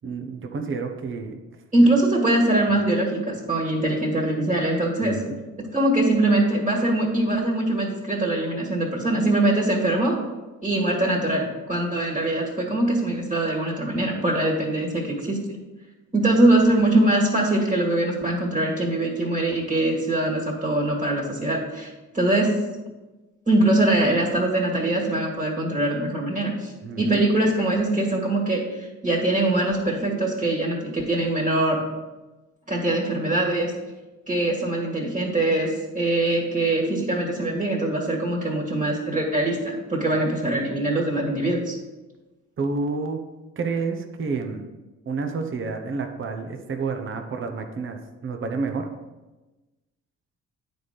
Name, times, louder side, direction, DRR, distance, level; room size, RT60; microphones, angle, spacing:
voice 1, 0.0-1.4 5.0-5.4 26.8-27.2 42.6-43.2 43.6-44.6 45.1-48.9, right 4 dB, 40° right, 5 dB, 1.0 m, -29 dB
voice 2, 1.7-5.2 5.6-10.2 10.6-15.4 16.1-22.6 23.5-26.7 27.0-31.8 32.7-33.7 34.3-41.8, right 1 dB, 25° right, -1 dB, 2.0 m, -22 dB
9.2 x 4.2 x 5.1 m, 1.1 s
cardioid pair, 90°, 30 cm